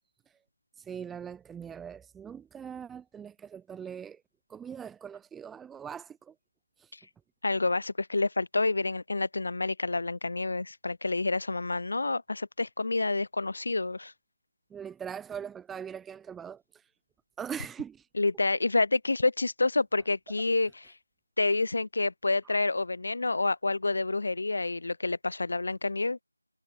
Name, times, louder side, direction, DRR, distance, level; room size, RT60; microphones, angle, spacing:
voice 1, 0.8-4.2 4.5-6.3 6.8-6.9 14.7-16.6 17.4-18.1, right 7 dB, 5° right, 0.4 m, -41 dB
voice 2, 7.4-14.1 18.1-20.9 21.4-26.2, left 3 dB, 45° left, 1.8 m, -28 dB
figure-of-eight pair, 165°, 0 cm